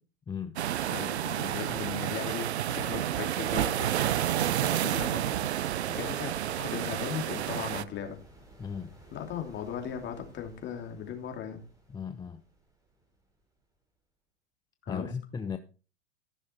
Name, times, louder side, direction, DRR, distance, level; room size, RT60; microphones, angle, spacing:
voice 1, 0.3-0.6 8.6-8.9 11.9-12.4 14.9-15.6, left 6 dB, 10° left, 0.6 m, -36 dB
sound 1, 0.6-7.8, right 11 dB, 85° right, 0.6 m, -30 dB
voice 2, 0.9-5.5 5.9-8.2 9.1-11.6 14.8-15.1, left 8 dB, 35° left, 2.9 m, -38 dB
sound 2, 6.1-13.8, right 1 dB, 10° right, 4.0 m, -56 dB
14.5 x 6.3 x 4.3 m
hypercardioid pair, 105°, 32 cm